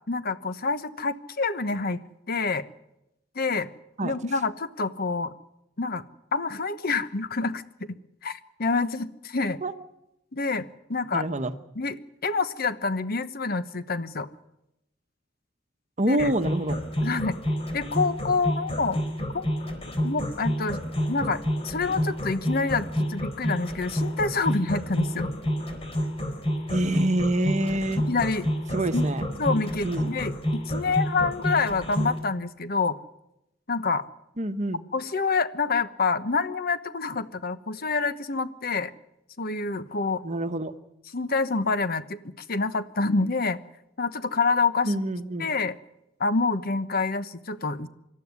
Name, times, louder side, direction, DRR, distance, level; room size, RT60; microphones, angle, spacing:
voice 1, 0.1-2.0 2.3-2.7 3.3-3.7 4.0-5.3 5.8-6.0 6.3-7.9 8.2-9.6 10.3-11.3 11.7-12.0 12.2-14.3 16.1-16.3 17.0-17.4 17.7-19.0 19.3-19.5 20.0-20.8 21.1-25.3 28.0-28.5 28.9-29.1 29.4-33.0 33.7-34.1 34.9-38.9 39.4-40.2 41.1-43.6 44.0-44.9 45.4-45.8 46.2-47.9, left 4 dB, 50° left, 12 dB, 1.1 m, -27 dB
voice 2, 11.1-11.5 16.0-16.8 26.7-28.0 28.7-29.2 29.8-30.1 34.4-34.8 40.2-40.7 44.9-45.5, right 1 dB, 40° right, 10 dB, 1.2 m, -26 dB
sound 1, 16.2-32.2, equal, 30° left, 4.2 m, -28 dB
26.0 x 13.0 x 9.6 m, 0.87 s
head